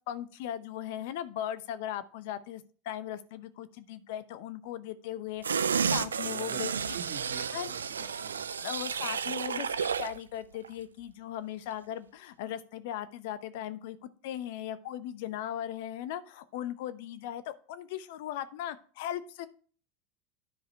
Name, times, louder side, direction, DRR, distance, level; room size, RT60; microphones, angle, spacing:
voice 1, 0.1-6.7 7.5-7.7 8.5-19.5, left 11 dB, 65° left, 0.8 m, -38 dB
sound 1, 5.4-10.2 10.5-10.7, right 6 dB, 85° right, 0.4 m, -31 dB
voice 2, 6.2-8.5, right 9 dB, 55° right, 1.2 m, -46 dB
10.0 x 5.0 x 4.4 m
hypercardioid pair, 85°, 0 cm